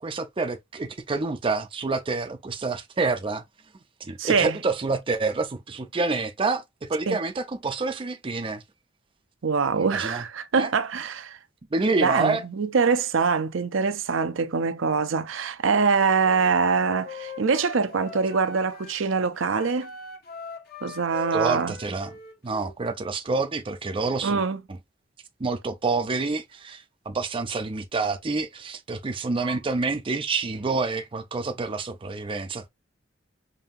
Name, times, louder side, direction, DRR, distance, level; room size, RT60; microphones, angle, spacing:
voice 1, 0.0-3.4 4.0-8.6 9.7-10.2 10.6-10.7 11.7-12.4 21.3-22.1 22.4-24.4 25.4-32.7, right 3 dB, 25° right, 0.5 m, -28 dB
voice 2, 4.2-4.6 7.1-7.2 9.4-11.4 11.9-19.9 20.8-21.7 24.2-24.6 29.4-29.6, right 5 dB, 80° right, 0.6 m, -24 dB
Wind instrument woodwind instrument, 15.7-19.0 19.4-22.8, left 4 dB, 55° left, 1.1 m, -42 dB
5.2 x 2.7 x 2.6 m
head